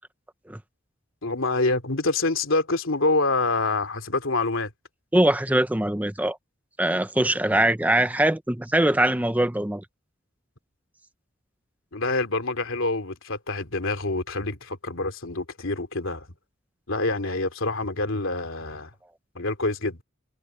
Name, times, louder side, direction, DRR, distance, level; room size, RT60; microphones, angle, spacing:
voice 1, 1.2-4.7 11.9-16.3 16.9-18.9 19.3-20.0, left 2 dB, 85° left, 2.8 m, -26 dB
voice 2, 5.1-6.4 6.8-9.8, right 1 dB, 10° right, 0.8 m, -22 dB
head